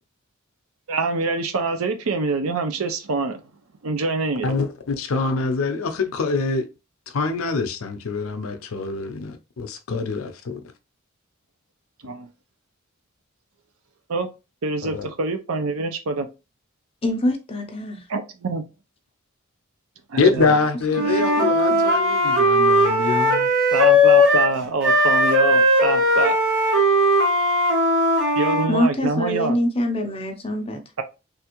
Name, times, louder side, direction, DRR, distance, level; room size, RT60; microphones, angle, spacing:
voice 1, 0.9-3.4 3.8-4.6 12.0-12.3 14.1-14.3 14.6-16.3 18.1-18.6 20.1-20.5 23.7-26.4 28.3-29.6 31.0-31.1, right 3 dB, 75° right, 0.6 m, -25 dB
voice 2, 4.4-6.7 7.1-10.6 14.8-15.1 20.2-23.5, left 4 dB, 75° left, 0.5 m, -24 dB
voice 3, 17.0-18.0 21.0-21.1 21.4-21.9 28.7-30.8, left 1 dB, 25° left, 0.6 m, -25 dB
Wind instrument woodwind instrument, 20.9-24.5 24.8-28.7, left 1 dB, 60° right, 1.3 m, -18 dB
3.4 x 2.5 x 2.9 m
head